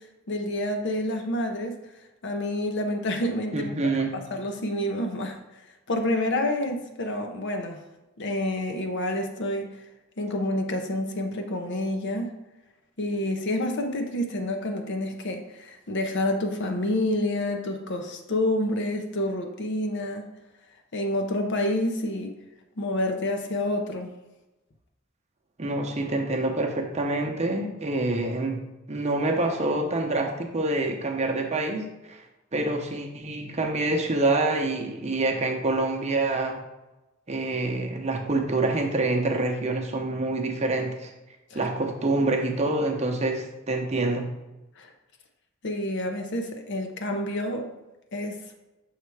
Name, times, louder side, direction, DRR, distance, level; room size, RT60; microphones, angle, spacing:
voice 1, 0.3-1.8 2.2-5.4 5.9-7.8 8.2-9.7 10.2-12.4 13.0-20.3 20.9-22.4 22.8-24.1 41.5-41.7 44.8-44.9 45.6-47.7 48.1-48.4, left 1 dB, 60° left, 4 dB, 0.7 m, -28 dB
voice 2, 3.5-4.1 25.6-28.6 28.9-32.2 32.5-36.6 37.3-41.1 41.5-44.3, right 2 dB, 35° right, 2 dB, 0.7 m, -26 dB
6.5 x 3.3 x 4.7 m, 1.0 s
head